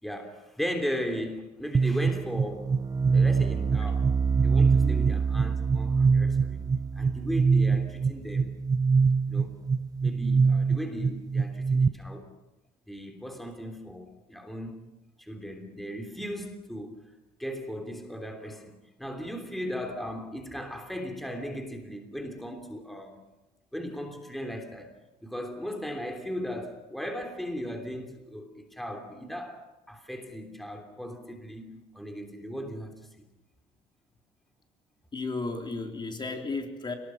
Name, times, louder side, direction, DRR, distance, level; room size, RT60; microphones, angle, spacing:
voice 1, 0.0-2.7 3.1-4.0 4.4-6.7 6.9-8.6 9.3-9.6 10.0-12.3 12.9-14.8 15.2-17.0 17.4-23.2 23.7-24.9 25.2-32.9, equal, ahead, 5 dB, 3.4 m, -37 dB
sound 1, 1.7-11.9, right 5 dB, 20° right, 0.7 m, -24 dB
voice 2, 4.7-5.2 35.1-36.9, left 3 dB, 25° left, 3 dB, 3.6 m, -34 dB
29.0 x 19.5 x 5.9 m, 0.98 s
cardioid pair, 110°, 17 cm